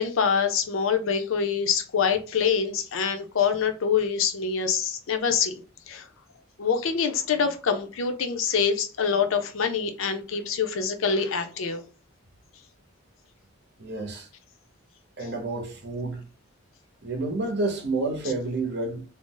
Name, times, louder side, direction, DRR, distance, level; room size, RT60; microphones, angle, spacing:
voice 1, 0.0-6.1 6.6-11.8, left 6 dB, 70° left, 0.5 m, -25 dB
voice 2, 13.8-14.3 15.2-16.2 17.0-19.0, right 2 dB, 50° right, 0.7 m, -29 dB
2.5 x 2.0 x 3.7 m
head